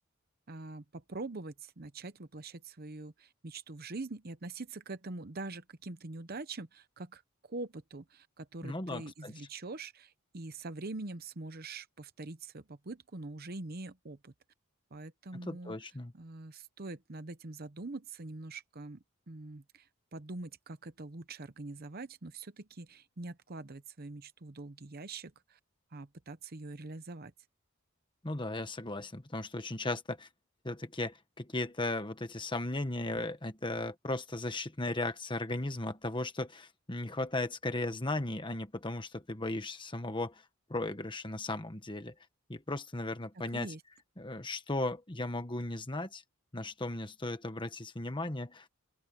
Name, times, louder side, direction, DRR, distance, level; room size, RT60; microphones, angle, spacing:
voice 1, 0.5-14.3 14.9-15.8 16.1-25.6 25.9-27.3 43.5-43.8, right 3 dB, 45° right, 0.9 m, -44 dB
voice 2, 8.6-9.3 15.3-16.1 28.2-30.3 30.6-40.4 40.7-42.1 42.5-43.7 44.2-46.2 46.5-48.7, left 2 dB, 20° left, 1.4 m, -36 dB
open air
head